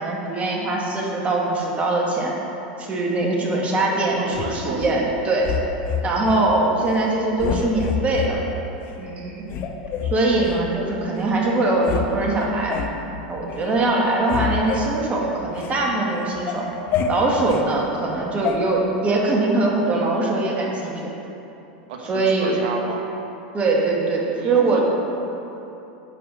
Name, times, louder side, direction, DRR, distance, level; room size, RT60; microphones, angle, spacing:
voice 1, 0.0-2.3 2.8-5.6 6.0-8.4 9.0-9.4 10.0-12.8 13.3-16.7 17.1-21.1 22.0-22.6 23.5-24.8, right 2 dB, 25° right, -2 dB, 1.9 m, -22 dB
voice 2, 4.2-4.8 21.9-23.0 24.4-24.8, right 4 dB, 65° right, 1 dB, 1.4 m, -31 dB
sound 1, 4.3-5.0 5.4-6.4 6.8-7.1 7.4-8.3 8.9-9.0 9.5-10.6 11.2-11.3 11.6-12.1 12.3-13.0 13.4-13.7 14.0-15.8 16.2-17.7 18.4-18.6, left 7 dB, 45° left, 0.8 m, -28 dB
9.8 x 4.7 x 6.4 m, 2.9 s
hypercardioid pair, 100°, 5 cm